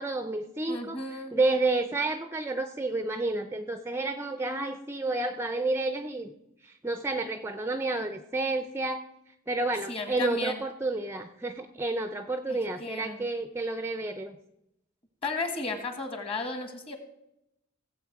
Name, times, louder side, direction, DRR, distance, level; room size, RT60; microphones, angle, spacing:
voice 1, 0.0-6.3 6.6-9.0 9.5-14.4, right 2 dB, 10° right, 9 dB, 0.5 m, -30 dB
voice 2, 0.7-1.4 9.9-10.6 12.5-13.2 15.2-17.0, left 3 dB, 30° left, 6 dB, 1.6 m, -34 dB
16.0 x 7.7 x 4.7 m, 0.85 s
head